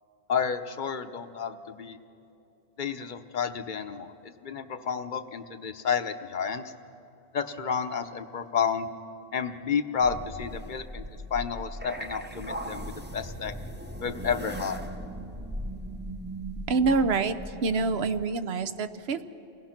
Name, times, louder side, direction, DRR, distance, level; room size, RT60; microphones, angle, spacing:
voice 1, 0.3-2.0 2.8-6.6 7.3-8.9 9.3-11.0 11.3-13.5 14.0-14.8, left 6 dB, 50° left, 9 dB, 0.9 m, -31 dB
sound 1, 10.0-18.2, right 1 dB, 10° right, 0.7 m, -38 dB
voice 2, 16.7-17.4 17.6-19.2, right 4 dB, 70° right, 10 dB, 1.0 m, -26 dB
29.5 x 18.5 x 5.9 m, 2.7 s
omnidirectional pair, 1.1 m